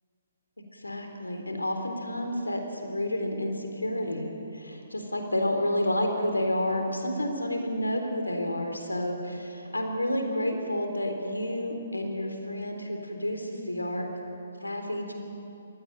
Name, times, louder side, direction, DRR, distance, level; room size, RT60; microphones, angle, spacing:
voice 1, 0.7-4.3 4.5-14.1 14.6-15.1, left 1 dB, 85° left, 4 dB, 3.7 m, -30 dB
22.0 x 17.0 x 9.1 m, 2.8 s
figure-of-eight pair, 135°, 0 cm